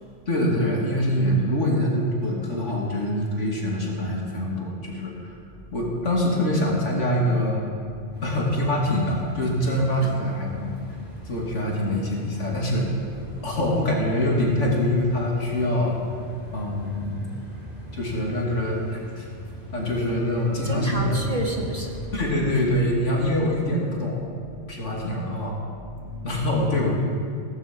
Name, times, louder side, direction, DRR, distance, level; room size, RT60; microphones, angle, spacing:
voice 1, 0.3-5.1 5.7-7.6 8.2-10.8 11.2-12.9 13.4-16.0 16.5-17.2 17.9-18.8 19.2-19.3 19.7-21.3 22.1-24.3 24.7-25.6 26.2-26.9, left 1 dB, 75° left, -2 dB, 3.2 m, -24 dB
sound 1, 8.1-23.4, equal, 10° right, 4.4 m, -42 dB
voice 2, 20.6-22.1 25.9-26.2, right 1 dB, 30° right, 0 dB, 1.9 m, -30 dB
16.5 x 15.5 x 5.5 m, 2.3 s
omnidirectional pair, 1.3 m